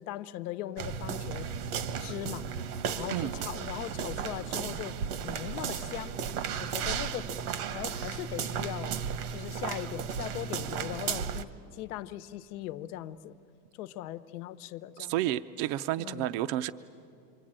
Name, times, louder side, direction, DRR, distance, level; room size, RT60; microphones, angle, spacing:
voice 1, 0.0-1.5 2.0-2.5 2.9-5.0 5.2-6.2 6.6-7.3 7.7-8.9 9.3-13.3 13.8-15.1 16.0-16.3, left 13 dB, 75° left, 13 dB, 1.0 m, -39 dB
sound 1, 0.8-11.4, right 7 dB, 80° right, 1.5 m, -35 dB
voice 2, 3.1-3.4 15.0-16.7, right 14 dB, 50° right, 10 dB, 0.6 m, -31 dB
27.5 x 24.0 x 8.8 m, 2.5 s
supercardioid pair, 155°, 45 cm